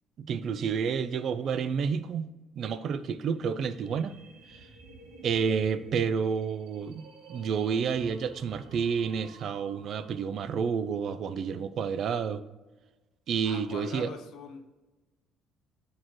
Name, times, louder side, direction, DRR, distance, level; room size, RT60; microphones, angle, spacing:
voice 1, 0.2-2.3 2.6-4.1 5.2-7.0 7.3-12.4 13.3-14.1, right 6 dB, 55° right, 13 dB, 0.4 m, -30 dB
sound 1, 3.3-10.3, right 2 dB, 90° right, 1.8 m, -52 dB
voice 2, 13.4-14.6, left 5 dB, 70° left, 6 dB, 0.9 m, -43 dB
9.1 x 4.4 x 3.0 m, 1.2 s
cardioid pair, 110°, 0 cm